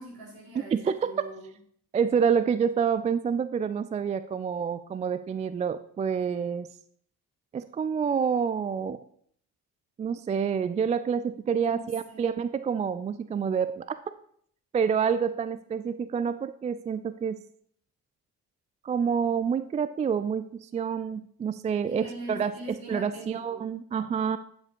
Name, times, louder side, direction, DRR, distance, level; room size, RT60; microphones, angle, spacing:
voice 1, 0.0-1.5 11.7-12.3 21.8-23.6, right 2 dB, 50° right, -2 dB, 4.7 m, -42 dB
voice 2, 0.7-1.1 1.9-6.7 7.5-9.0 10.0-13.9 14.7-17.4 18.8-24.4, right 7 dB, 15° right, 12 dB, 0.3 m, -28 dB
9.5 x 7.1 x 4.7 m, 0.62 s
figure-of-eight pair, 45°, 46 cm